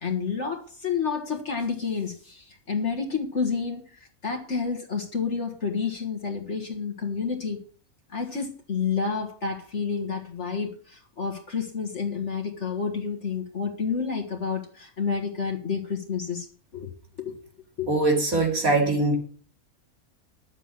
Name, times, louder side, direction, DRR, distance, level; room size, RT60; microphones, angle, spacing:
voice 1, 0.0-7.6 8.1-16.5 16.7-16.9 17.2-17.4 17.8-17.9, left 5 dB, 50° left, 2.0 m, -29 dB
voice 2, 17.9-19.2, right 2 dB, 75° right, 3.4 m, -22 dB
10.5 x 7.5 x 7.3 m
omnidirectional pair, 1.5 m